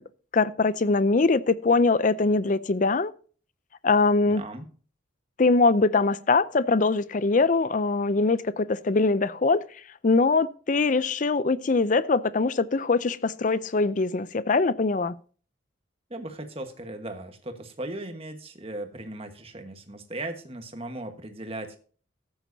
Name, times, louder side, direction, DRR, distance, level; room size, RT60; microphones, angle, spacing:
voice 1, 0.3-3.1 3.8-4.4 5.4-9.6 10.0-15.2, left 3 dB, 40° left, 0.5 m, -22 dB
voice 2, 4.2-4.7 16.1-21.8, right 1 dB, 30° right, 1.4 m, -37 dB
14.0 x 9.1 x 2.7 m
head